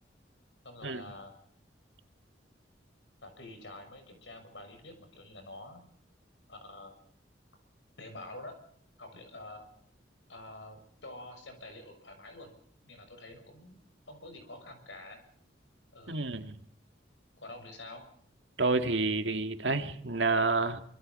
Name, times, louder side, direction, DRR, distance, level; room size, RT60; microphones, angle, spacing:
voice 1, 0.6-1.3 3.2-5.8 6.5-6.9 8.0-8.6 9.0-9.7 10.3-12.5 12.9-13.8 14.1-15.2 15.9-16.2 17.4-18.0, left 2 dB, 80° left, 7 dB, 6.3 m, -47 dB
voice 2, 16.1-16.6 18.6-20.8, right 3 dB, 75° right, 7 dB, 2.0 m, -29 dB
25.5 x 25.0 x 5.5 m, 0.62 s
head